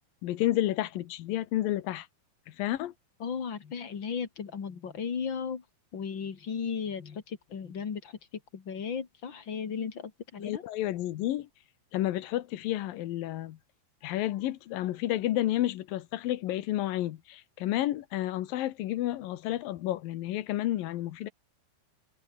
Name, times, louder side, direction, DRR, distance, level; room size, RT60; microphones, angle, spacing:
voice 1, 0.2-2.1 2.5-2.9 10.4-11.5 11.9-13.6 14.0-21.3, left 14 dB, 70° left, 2.7 m, -31 dB
voice 2, 3.2-5.6 5.9-8.2 8.5-10.6, left 6 dB, 40° left, 2.2 m, -35 dB
omnidirectional pair, 4.3 m